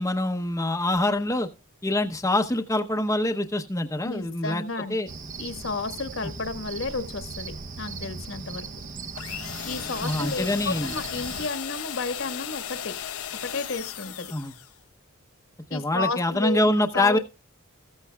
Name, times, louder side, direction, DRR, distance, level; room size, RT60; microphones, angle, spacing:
voice 1, 0.0-1.5 1.8-4.6 4.9-5.1 10.0-10.9 14.3-14.5 15.7-17.2, left 1 dB, 15° left, 3 dB, 0.7 m, -25 dB
voice 2, 4.0-5.0 5.4-8.7 9.7-12.9 13.4-14.3 15.7-17.2, left 3 dB, 60° left, 10 dB, 1.4 m, -32 dB
Cricket, 5.1-11.5, right 4 dB, 35° right, 0.7 m, -38 dB
sound 1, 9.2-14.8, left 10 dB, 85° left, 0.9 m, -36 dB
14.0 x 14.0 x 2.2 m, 0.28 s
head